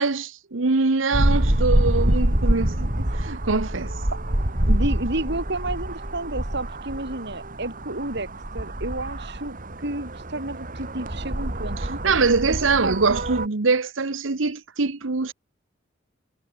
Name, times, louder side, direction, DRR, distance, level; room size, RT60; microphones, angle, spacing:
voice 1, 0.0-3.9 12.0-15.3, right 4 dB, 85° right, 1.1 m, -23 dB
sound 1, 1.1-13.5, right 1 dB, 45° right, 3.1 m, -26 dB
voice 2, 4.7-8.3 8.5-9.6 9.8-12.0 12.6-13.2, right 2 dB, 60° right, 5.4 m, -31 dB
head